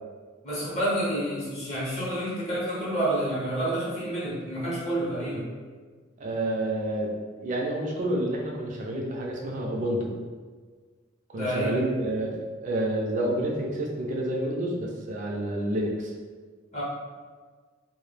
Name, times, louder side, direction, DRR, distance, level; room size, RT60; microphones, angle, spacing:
voice 1, 0.4-5.5 11.3-11.7 16.7-16.8, right 1 dB, 35° left, -8 dB, 0.6 m, -29 dB
voice 2, 6.2-10.1 11.3-12.3 12.6-16.1, right 1 dB, 40° right, -1 dB, 0.4 m, -29 dB
2.1 x 2.0 x 3.1 m, 1.5 s
head